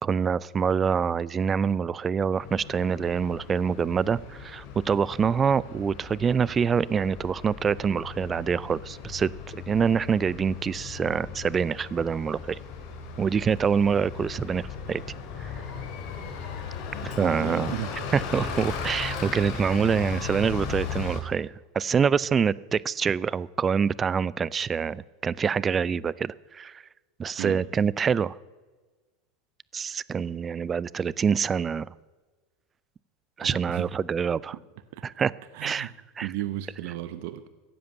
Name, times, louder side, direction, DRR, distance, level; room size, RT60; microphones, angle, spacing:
voice 1, 0.0-12.6 13.2-15.0 15.4-15.5 17.0-17.7 18.1-26.8 27.2-28.4 29.7-31.9 33.4-34.5 35.0-35.3 35.6-35.9 36.2-36.3, right 6 dB, 25° right, 21 dB, 0.4 m, -26 dB
Bus, 2.4-21.2, left 5 dB, 60° left, 2.8 m, -37 dB
voice 2, 17.2-17.9 27.4-27.6 33.4-33.9 34.9-35.0 35.5-36.0 36.2-37.5, right 14 dB, 65° right, 12 dB, 0.8 m, -34 dB
15.5 x 7.7 x 8.2 m, 1.3 s
hypercardioid pair, 105°, 0 cm